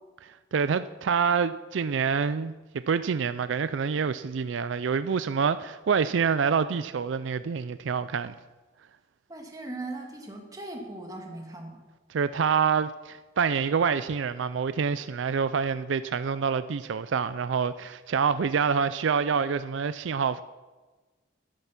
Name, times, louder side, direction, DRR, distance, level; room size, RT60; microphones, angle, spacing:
voice 1, 0.2-2.5 2.9-8.3 12.1-20.4, right 6 dB, 75° right, 0.4 m, -27 dB
voice 2, 9.3-11.8, right 2 dB, 20° right, 1.9 m, -39 dB
12.0 x 11.5 x 5.9 m
head